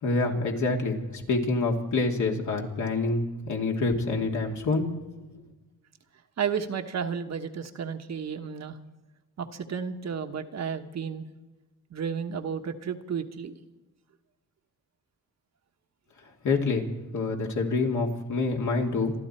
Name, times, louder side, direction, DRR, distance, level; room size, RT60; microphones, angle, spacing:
voice 1, 0.0-4.9 5.2-5.4 16.4-19.1, left 3 dB, 55° left, 1 dB, 2.9 m, -27 dB
voice 2, 6.4-8.8 9.4-11.3 11.9-13.6, right 7 dB, 50° right, 6 dB, 1.3 m, -32 dB
27.0 x 12.0 x 4.5 m, 1.1 s
cardioid pair, 100°, 35 cm